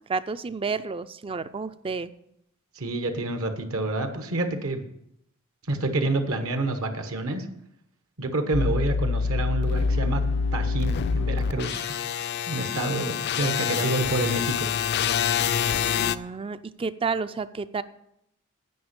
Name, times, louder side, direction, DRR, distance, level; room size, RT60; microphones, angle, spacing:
voice 1, 0.1-2.1 16.0-17.8, right 4 dB, 25° right, 14 dB, 0.4 m, -30 dB
voice 2, 2.7-4.8 5.7-7.5 8.2-10.2 10.5-12.0 12.5-14.7, right 2 dB, 70° right, 6 dB, 1.2 m, -28 dB
sound 1, 8.5-16.2, left 6 dB, 50° left, 0.4 m, -26 dB
9.4 x 5.2 x 8.0 m, 0.76 s
head